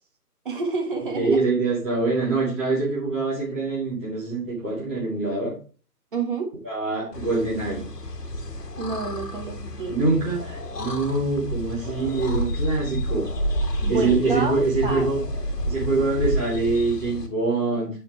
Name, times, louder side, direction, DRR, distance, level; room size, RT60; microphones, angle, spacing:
voice 1, 0.4-1.5 6.1-6.5 8.8-10.0 13.8-15.1, right 3 dB, 30° right, 2 dB, 1.4 m, -29 dB
voice 2, 1.1-5.5 6.6-7.8 9.9-13.2 13.9-15.2 15.6-17.9, right 3 dB, 10° right, -10 dB, 1.0 m, -24 dB
sound 1, 7.1-17.3, equal, 75° left, 1.5 m, -30 dB
12.0 x 4.3 x 3.2 m, 0.37 s
figure-of-eight pair, 155°, 48 cm